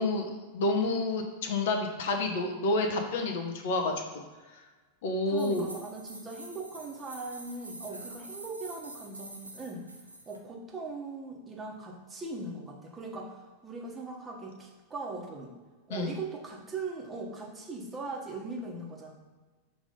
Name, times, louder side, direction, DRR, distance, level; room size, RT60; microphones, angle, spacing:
voice 1, 0.0-4.2 5.0-5.6 15.9-16.1, left 2 dB, 55° left, 4 dB, 0.8 m, -29 dB
voice 2, 5.3-9.9 10.3-15.5 15.9-19.1, right 3 dB, 20° right, -1 dB, 1.2 m, -40 dB
sound 1, 5.4-10.4, right 2 dB, 85° right, 0.8 m, -47 dB
6.2 x 3.3 x 5.2 m, 1.3 s
figure-of-eight pair, 90°, 0 cm